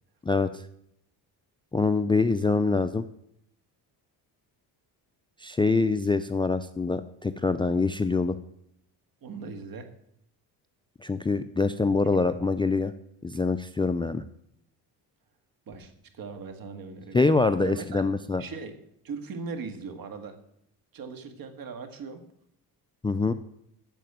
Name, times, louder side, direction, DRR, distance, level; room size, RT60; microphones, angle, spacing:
voice 1, 0.2-0.6 1.7-3.1 5.4-8.4 11.0-12.9 13.2-14.2 17.1-18.4 23.0-23.3, left 3 dB, 15° left, 11 dB, 0.4 m, -25 dB
voice 2, 9.2-9.9 12.3-12.4 15.7-17.3 17.6-18.0 18.4-18.8 19.0-20.4 20.9-22.2, right 4 dB, 55° right, 7 dB, 1.9 m, -39 dB
9.3 x 7.6 x 9.1 m, 0.73 s
cardioid pair, 115°, 40 cm